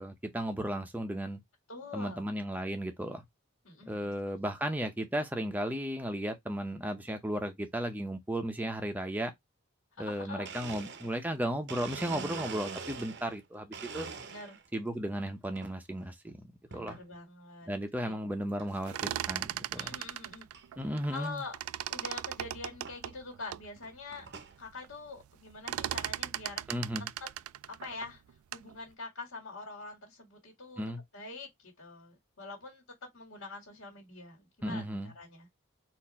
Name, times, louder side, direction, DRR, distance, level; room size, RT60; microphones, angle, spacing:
voice 1, 0.0-1.4 1.9-3.2 3.9-9.3 10.0-14.1 14.7-16.5 16.7-17.0 17.7-19.9 20.8-21.4 26.7-27.1 30.8-31.0 34.6-35.1, equal, 10° right, 0.7 m, -35 dB
voice 2, 1.7-2.3 3.6-4.1 10.0-10.5 14.3-14.6 16.7-17.7 18.0-18.2 19.8-20.5 21.1-21.6 21.9-24.3 24.6-26.7 27.2-27.3 27.8-28.2 28.5-30.8 31.1-35.5, left 3 dB, 70° left, 2.0 m, -45 dB
Domestic sounds home sounds, 10.4-13.4 13.7-14.7 15.2-15.7 16.7-17.0 17.6-17.7 18.6-18.7 18.9-19.3 19.7-19.8 20.0-20.1 20.5-20.6 22.0-22.1 22.8-23.0 23.6-24.6, right 5 dB, 50° right, 0.7 m, -43 dB
sound 1, 18.7-21.3 21.5-23.7 24.2-24.3 24.5-24.9 25.2-28.7, right 12 dB, 85° right, 0.3 m, -37 dB
4.2 x 2.6 x 4.2 m
head